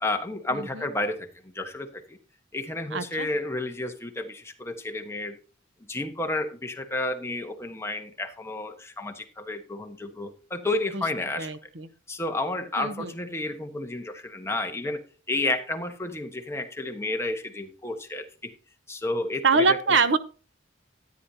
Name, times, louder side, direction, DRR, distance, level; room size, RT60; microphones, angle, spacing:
voice 1, 0.0-2.2 2.5-5.4 5.9-11.5 12.1-15.0 15.3-18.5 18.9-20.0, left 2 dB, 15° left, 5 dB, 1.2 m, -31 dB
voice 2, 0.5-0.9 2.9-3.3 10.9-11.0 11.3-11.9 12.8-13.1 19.4-20.2, right 4 dB, 70° right, 12 dB, 0.9 m, -24 dB
13.5 x 9.6 x 2.8 m, 0.35 s
head